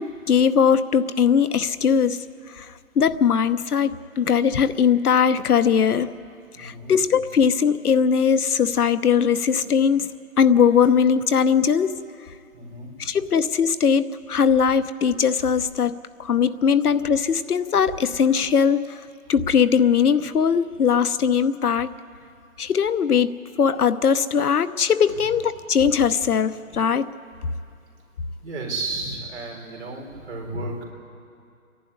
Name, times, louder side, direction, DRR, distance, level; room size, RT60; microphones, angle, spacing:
voice 1, 0.0-2.2 2.5-6.1 6.6-10.1 10.4-12.0 13.0-15.9 16.2-19.0 19.3-21.9 22.6-27.1, left 7 dB, 85° left, 12 dB, 1.0 m, -20 dB
voice 2, 6.6-6.9 12.5-13.1 28.4-30.9, right 2 dB, 50° right, 0 dB, 4.4 m, -33 dB
29.0 x 11.5 x 9.6 m, 2.4 s
hypercardioid pair, 175°, 44 cm